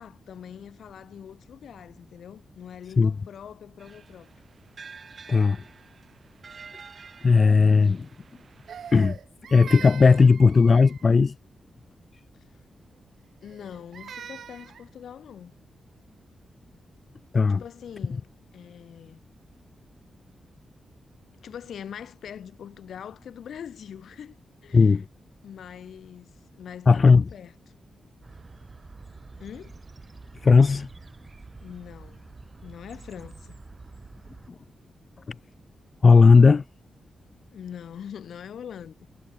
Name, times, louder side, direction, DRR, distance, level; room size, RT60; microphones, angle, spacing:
voice 1, 0.0-4.3 13.4-15.5 17.5-19.2 21.3-24.3 24.6-25.0 25.4-26.3 26.6-27.5 29.4-29.7 31.6-32.3 32.6-33.6 37.5-38.9, left 8 dB, 80° left, 2.5 m, -42 dB
sound 1, 3.8-9.0, right 5 dB, 45° right, 0.7 m, -49 dB
voice 2, 5.3-5.6 7.2-8.1 8.9-9.2 9.5-11.3 17.3-17.6 24.7-25.0 26.9-27.2 30.4-30.9 35.3-35.4 36.0-36.6, left 4 dB, 40° left, 0.3 m, -16 dB
Crying sobbing, 8.7-11.2 13.4-14.9, right 8 dB, 75° right, 0.3 m, -42 dB
sound 2, 28.2-34.5, right 3 dB, 30° right, 2.7 m, -47 dB
wide cardioid pair, 125°, 0 cm